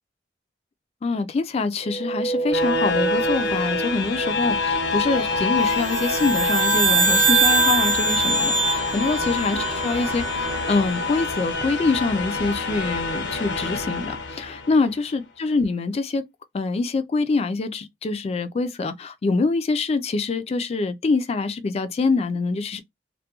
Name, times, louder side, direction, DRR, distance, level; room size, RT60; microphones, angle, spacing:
voice 1, 1.0-16.2 16.5-22.8, left 3 dB, 35° left, 0.3 m, -25 dB
sound 1, 1.8-14.8, left 2 dB, 80° left, 0.6 m, -26 dB
sound 2, 3.3-10.8, right 5 dB, 40° right, 0.6 m, -38 dB
sound 3, 5.7-10.3, right 4 dB, 85° right, 0.7 m, -22 dB
2.3 x 2.1 x 2.8 m
head